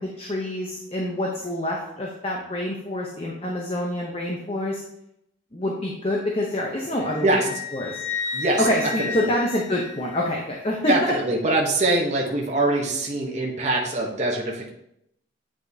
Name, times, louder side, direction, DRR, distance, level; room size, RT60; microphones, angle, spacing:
voice 1, 0.0-4.8 5.5-7.4 7.7-8.0 8.6-11.1, left 1 dB, 30° left, -1 dB, 0.7 m, -26 dB
Wind instrument woodwind instrument, 7.0-10.5, left 5 dB, 75° left, 0.6 m, -33 dB
voice 2, 8.3-8.7 9.0-9.3 10.9-14.7, right 2 dB, 35° right, -1 dB, 0.9 m, -23 dB
8.3 x 4.9 x 2.7 m, 0.78 s
head